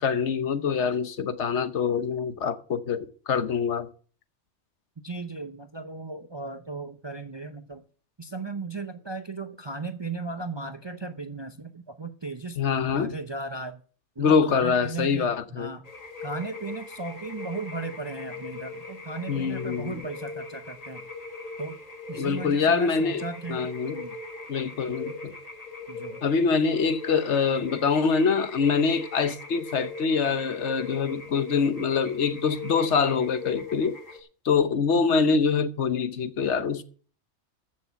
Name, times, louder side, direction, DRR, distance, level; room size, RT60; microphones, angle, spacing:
voice 1, 0.0-3.9 12.6-13.1 14.2-15.7 19.3-20.0 22.2-23.2 23.5-23.9 24.5-25.3 26.2-33.9 34.4-36.8, left 5 dB, 70° left, 1.2 m, -25 dB
voice 2, 5.0-7.8 8.2-12.6 12.9-13.8 14.2-15.9 16.2-21.0 21.6-21.8 22.1-24.2 25.9-26.2, right 3 dB, 30° right, 0.5 m, -36 dB
sound 1, 15.8-34.2, left 3 dB, 30° left, 1.6 m, -40 dB
14.0 x 6.5 x 5.8 m
omnidirectional pair, 1.2 m